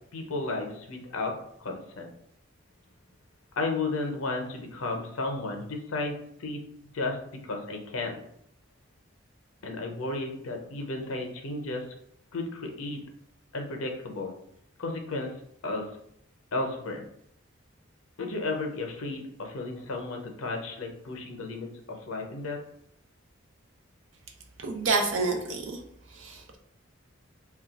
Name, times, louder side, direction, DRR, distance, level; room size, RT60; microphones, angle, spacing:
voice 1, 0.1-1.3 1.6-2.1 3.6-6.6 6.9-7.2 7.4-8.2 9.6-11.8 12.3-13.0 13.5-14.3 14.8-15.3 15.6-15.8 16.5-17.0 18.2-22.6, left 2 dB, 90° left, 3 dB, 0.6 m, -33 dB
voice 2, 24.6-25.8 26.1-26.6, right 3 dB, 65° right, 3 dB, 0.5 m, -28 dB
2.3 x 2.2 x 3.9 m, 0.70 s
head